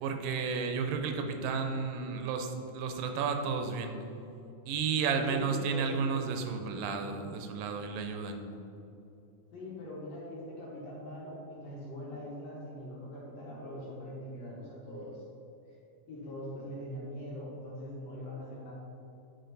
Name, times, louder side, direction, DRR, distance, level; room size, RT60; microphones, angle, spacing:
voice 1, 0.0-3.9 4.7-8.4, right 5 dB, 90° right, 5 dB, 2.4 m, -32 dB
voice 2, 5.3-6.0 9.5-15.2 16.1-18.7, left 1 dB, 60° left, -6 dB, 2.3 m, -42 dB
8.6 x 5.1 x 4.0 m, 2.8 s
omnidirectional pair, 3.9 m